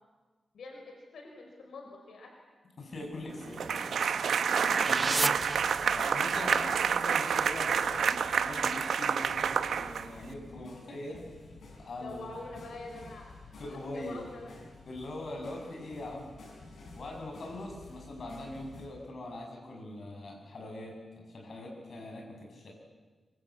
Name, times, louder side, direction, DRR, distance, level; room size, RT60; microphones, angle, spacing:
voice 1, 0.5-2.4 12.0-14.5, left 2 dB, 90° left, 2 dB, 4.6 m, -45 dB
voice 2, 2.8-3.8 4.3-5.3 5.9-11.2 11.8-12.3 13.6-14.2 14.9-16.4 16.9-22.7, left 1 dB, 50° left, 0 dB, 7.0 m, -42 dB
sound 1, 2.9-6.4, right 3 dB, 25° right, 0.8 m, -36 dB
sound 2, 3.6-10.3, right 7 dB, 85° right, 1.0 m, -28 dB
sound 3, 5.4-18.9, left 3 dB, 70° left, 7.5 m, -52 dB
24.5 x 24.0 x 8.6 m, 1.4 s
wide cardioid pair, 175°, 0 cm